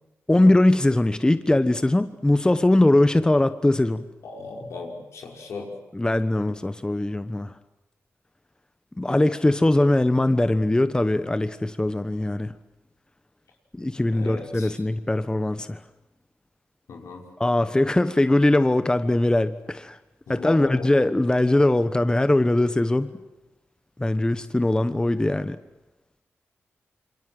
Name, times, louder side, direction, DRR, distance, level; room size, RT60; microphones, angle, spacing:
voice 1, 0.3-4.1 5.9-7.5 9.0-12.5 13.7-15.8 17.4-20.0 20.3-23.1 24.0-25.6, left 1 dB, 15° left, 1.2 m, -21 dB
voice 2, 4.2-5.7 14.1-14.7 16.9-17.3 20.3-20.9, left 4 dB, 85° left, 5.7 m, -37 dB
27.5 x 25.0 x 7.8 m
cardioid pair, 65°, 5 cm